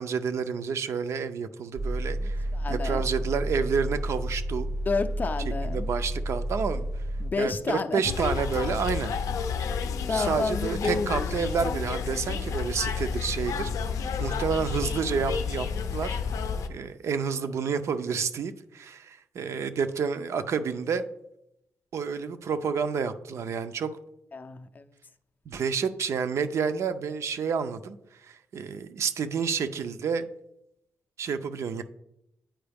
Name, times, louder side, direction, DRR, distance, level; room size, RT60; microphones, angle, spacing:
voice 1, 0.0-4.7 5.7-6.9 7.4-9.1 10.1-13.7 14.2-15.7 15.9-16.2 16.7-21.0 21.9-23.9 25.5-28.0 28.2-30.2 31.2-31.8, right 6 dB, 60° right, 10 dB, 0.4 m, -29 dB
sound 1, 1.7-7.3, right 1 dB, 90° right, 1.2 m, -31 dB
voice 2, 2.2-3.0 4.9-5.9 7.2-8.0 10.1-11.3 24.3-24.8, left 4 dB, 35° left, 8 dB, 0.4 m, -30 dB
sound 2, 8.0-16.7, left 6 dB, 90° left, 0.5 m, -30 dB
8.8 x 4.6 x 3.4 m, 0.83 s
cardioid pair, 125°, 5 cm